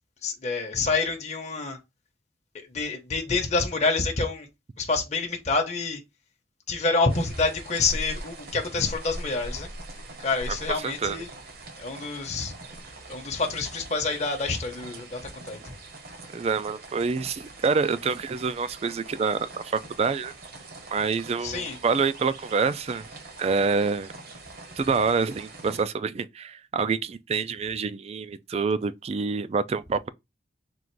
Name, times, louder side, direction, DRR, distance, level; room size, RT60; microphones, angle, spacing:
voice 1, 0.2-1.8 2.7-4.5 4.8-6.0 6.7-9.7 10.2-11.3 11.8-12.5 13.1-15.2 15.4-15.7 21.4-21.8, left 3 dB, 40° left, 0.9 m, -27 dB
sound 1, 7.1-25.8, right 2 dB, 55° right, 1.0 m, -42 dB
voice 2, 10.8-11.2 16.3-20.3 20.9-23.0 23.4-24.1 24.8-30.1, right 5 dB, 35° right, 0.3 m, -27 dB
3.8 x 2.5 x 4.5 m
head